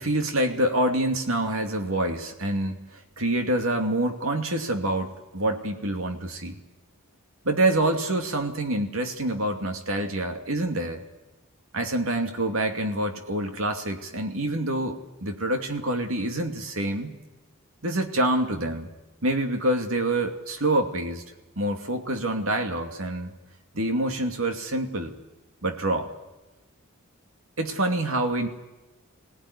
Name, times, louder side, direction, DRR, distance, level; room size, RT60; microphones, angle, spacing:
voice 1, 0.0-6.6 7.4-11.0 11.7-17.1 17.8-18.9 19.2-21.2 21.6-23.3 23.7-25.1 25.6-26.1 27.6-28.5, right 1 dB, 70° right, 5 dB, 2.6 m, -26 dB
22.0 x 18.0 x 9.8 m, 1.1 s
head